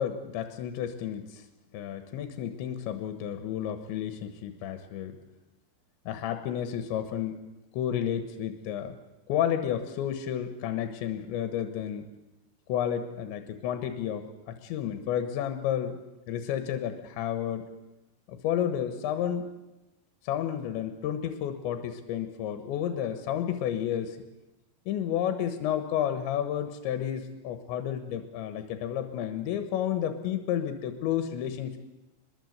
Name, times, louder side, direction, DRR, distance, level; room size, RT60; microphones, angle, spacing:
voice 1, 0.0-1.5 1.7-5.2 6.1-7.4 7.7-9.0 9.3-12.1 12.7-16.0 16.3-17.7 18.3-19.5 20.2-24.2 24.9-31.8, left 10 dB, 90° left, 9 dB, 3.5 m, -31 dB
23.5 x 21.5 x 8.0 m, 1.0 s
omnidirectional pair, 5.2 m